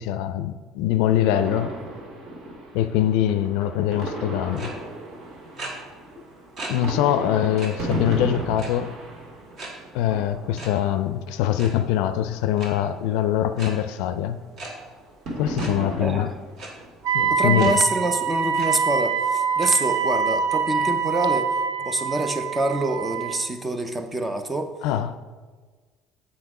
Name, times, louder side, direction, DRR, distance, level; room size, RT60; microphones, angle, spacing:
voice 1, 0.0-1.8 2.7-4.7 6.7-8.9 9.9-14.4 15.4-16.3 17.1-17.7 24.8-25.2, left 11 dB, 80° left, 0.4 m, -23 dB
sound 1, 1.3-11.7 12.1-14.2 14.4-17.6, right 2 dB, 50° right, 1.9 m, -36 dB
sound 2, 4.6-4.7 5.6-5.7 6.6-6.7 7.1-7.2 7.6-7.7 8.6-8.9 9.6-9.7 10.6-10.7 11.4-11.7 12.6-12.7 13.6-13.7 14.6-14.7 15.6-15.7 16.6-16.7 17.6-17.7 18.1-18.2 18.6-18.7 19.6-19.7, right 2 dB, 35° right, 1.4 m, -36 dB
Wind instrument woodwind instrument, 17.0-23.5, right 6 dB, 75° right, 0.6 m, -24 dB
voice 2, 17.3-21.5 21.8-24.7, right 2 dB, 10° right, 0.5 m, -26 dB
8.0 x 4.2 x 4.8 m
cardioid pair, 175°, 0 cm